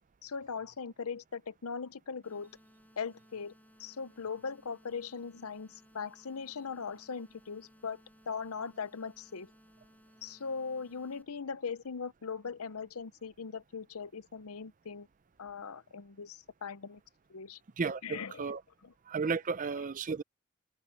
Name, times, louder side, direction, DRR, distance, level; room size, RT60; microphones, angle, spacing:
voice 1, 0.2-2.5 3.0-3.5 3.8-8.0 8.3-9.5 10.2-15.1 15.4-17.0 17.3-17.6 18.0-18.5 18.8-18.9, left 5 dB, 80° left, 0.7 m, -40 dB
sound 1, 2.2-11.2, equal, 5° left, 4.9 m, -62 dB
voice 2, 17.8-18.6 19.1-20.2, right 5 dB, 35° right, 0.5 m, -33 dB
open air
head